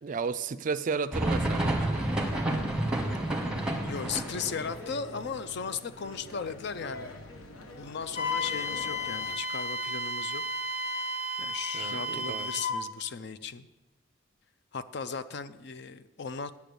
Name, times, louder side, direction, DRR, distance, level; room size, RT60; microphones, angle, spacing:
voice 1, 0.0-2.1 11.7-12.5, right 5 dB, 40° right, 14 dB, 0.4 m, -33 dB
sound 1, 1.1-4.8, right 1 dB, 5° right, 1.2 m, -29 dB
sound 2, 2.0-9.4, left 1 dB, 85° left, 1.1 m, -45 dB
voice 2, 3.8-7.2 7.7-10.4 11.4-13.7 14.7-16.5, left 6 dB, 55° left, 13 dB, 0.5 m, -37 dB
Wind instrument woodwind instrument, 8.1-12.8, left 1 dB, 30° left, 0.9 m, -33 dB
9.1 x 7.0 x 6.8 m, 1.0 s
head